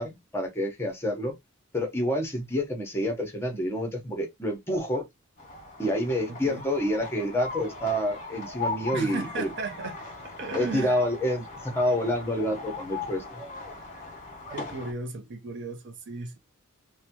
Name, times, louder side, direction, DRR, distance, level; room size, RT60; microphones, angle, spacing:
voice 1, 0.0-1.3 1.7-5.1 5.8-9.5 10.5-13.4, equal, 10° left, 0.9 m, -28 dB
sound 1, 5.4-14.9, left 3 dB, 35° left, 1.1 m, -38 dB
voice 2, 6.3-6.7 8.9-9.9 10.2-11.0 14.5-16.4, right 4 dB, 55° right, 0.6 m, -36 dB
3.3 x 2.2 x 2.8 m
head